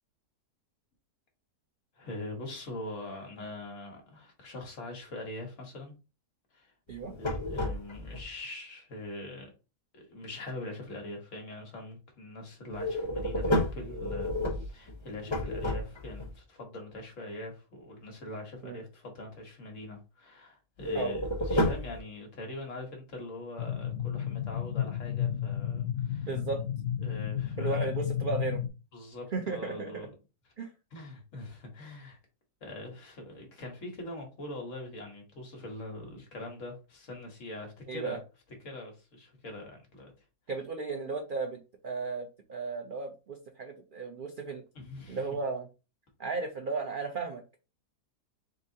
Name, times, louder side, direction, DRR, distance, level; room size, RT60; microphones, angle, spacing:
voice 1, 1.9-5.9 6.5-6.7 7.2-9.5 9.9-26.3 27.0-27.9 28.9-30.1 30.9-32.2 32.6-38.2 38.6-40.1 44.7-45.2, left 2 dB, 55° left, 2 dB, 1.4 m, -43 dB
sound 1, 6.9-8.2 12.7-16.3 20.8-22.0, left 1 dB, 35° left, 0.4 m, -31 dB
sound 2, 23.6-28.7, left 9 dB, 85° left, 0.5 m, -32 dB
voice 2, 26.3-26.6 27.6-28.6 29.3-30.1 30.6-30.7 37.9-38.2 40.5-44.6 45.1-45.7 46.2-47.6, right 4 dB, 75° right, 3 dB, 0.4 m, -35 dB
3.9 x 3.6 x 2.7 m, 0.31 s
omnidirectional pair, 1.7 m